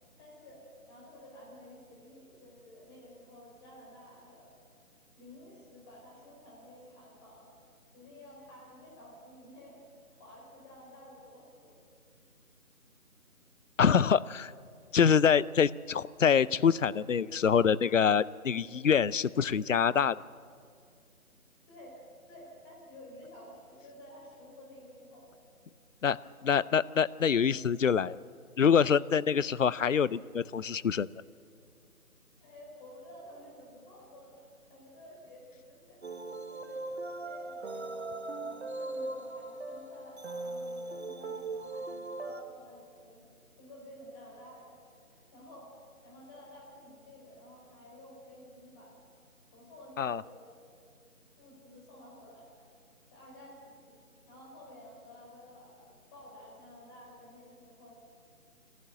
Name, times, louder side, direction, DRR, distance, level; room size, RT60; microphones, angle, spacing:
voice 1, 0.2-4.6 5.1-7.5 7.9-9.8 10.1-11.7 21.7-22.0 22.3-25.3 32.4-36.1 36.5-48.9 49.5-50.5 51.4-52.7 53.1-53.9 54.3-57.9, left 1 dB, 15° left, -4 dB, 5.0 m, -52 dB
voice 2, 13.8-14.5 14.9-20.2 26.0-26.2 26.4-28.2 28.6-31.1 50.0-50.2, left 7 dB, 60° left, 20 dB, 0.6 m, -25 dB
sound 1, 36.0-42.4, right 2 dB, 45° right, 1.1 m, -39 dB
22.0 x 15.5 x 9.5 m, 2.2 s
figure-of-eight pair, 160°, 43 cm